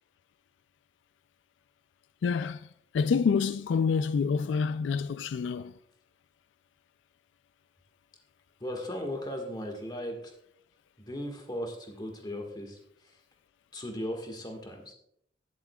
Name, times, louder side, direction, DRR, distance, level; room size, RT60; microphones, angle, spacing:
voice 1, 2.2-2.7 2.9-5.7, left 5 dB, 85° left, 0.3 m, -27 dB
voice 2, 8.6-10.3 11.0-12.8 13.7-14.9, equal, 25° left, 1.6 m, -37 dB
15.5 x 7.3 x 2.3 m
head